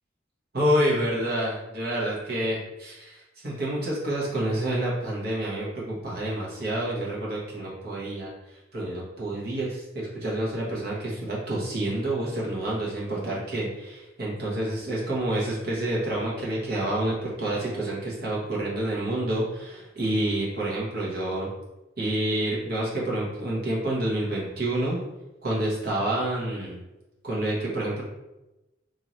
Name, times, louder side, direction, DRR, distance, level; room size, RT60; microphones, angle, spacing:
voice 1, 0.5-8.3 8.7-21.5 22.0-25.0 25.4-26.8 27.2-28.0, right 1 dB, 55° right, -5 dB, 1.3 m, -28 dB
3.1 x 2.8 x 4.0 m, 1.0 s
head